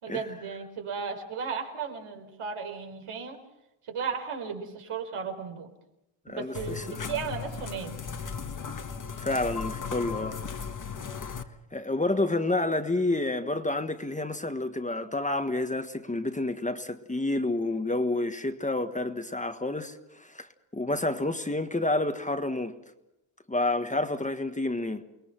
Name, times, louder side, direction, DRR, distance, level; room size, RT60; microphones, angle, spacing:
voice 1, 0.0-3.4 3.9-5.7 6.3-7.9, right 6 dB, 80° right, 4.8 m, -35 dB
voice 2, 6.3-7.0 9.2-10.4 11.7-20.5 20.7-22.8 23.5-25.0, left 2 dB, 15° left, 1.4 m, -29 dB
sound 1, 6.5-11.4, left 6 dB, 40° left, 1.6 m, -36 dB
29.0 x 21.0 x 6.1 m
wide cardioid pair, 165°, 50 cm